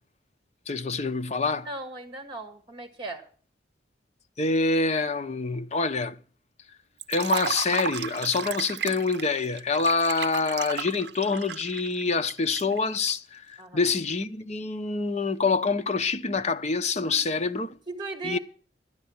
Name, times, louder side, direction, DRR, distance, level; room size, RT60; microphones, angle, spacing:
voice 1, 0.7-1.7 4.4-6.2 7.1-13.4 13.7-17.8 18.2-18.4, left 4 dB, 40° left, 0.8 m, -26 dB
voice 2, 1.6-3.3 13.6-13.8 17.0-17.3 17.9-18.4, right 2 dB, 30° right, 1.8 m, -37 dB
Liquid, 7.0-13.1, right 7 dB, 70° right, 0.6 m, -34 dB
12.5 x 10.5 x 7.1 m
head